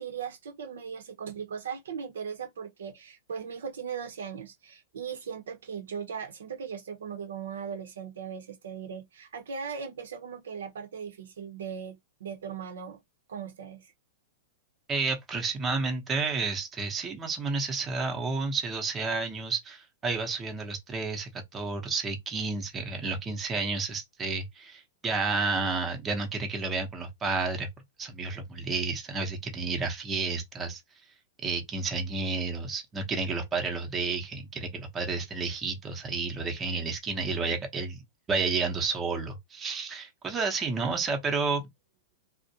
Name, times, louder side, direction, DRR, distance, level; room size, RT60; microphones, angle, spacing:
voice 1, 0.0-13.0 13.3-13.9 37.2-37.5, right 7 dB, 80° right, 0.7 m, -38 dB
voice 2, 14.9-27.7 28.0-30.8 31.4-38.0 38.3-41.7, right 4 dB, 20° right, 0.7 m, -31 dB
2.5 x 2.1 x 2.7 m
hypercardioid pair, 125°, 0 cm